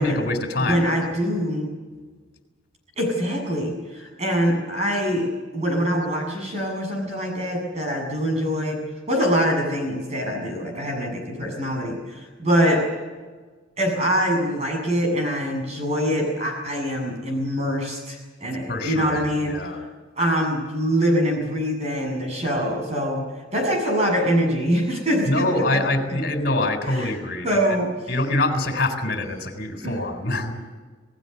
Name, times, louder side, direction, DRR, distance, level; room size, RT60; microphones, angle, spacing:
voice 1, 0.0-1.1 18.7-19.8 25.3-27.6 28.1-30.6, left 2 dB, 50° left, 4 dB, 3.8 m, -25 dB
voice 2, 0.6-1.7 3.0-5.3 5.5-12.8 13.8-19.6 20.2-23.2 23.5-25.5 26.8-27.2 27.4-27.9 29.8-30.0, equal, 35° right, 2 dB, 7.6 m, -24 dB
28.5 x 18.5 x 6.9 m, 1.4 s
head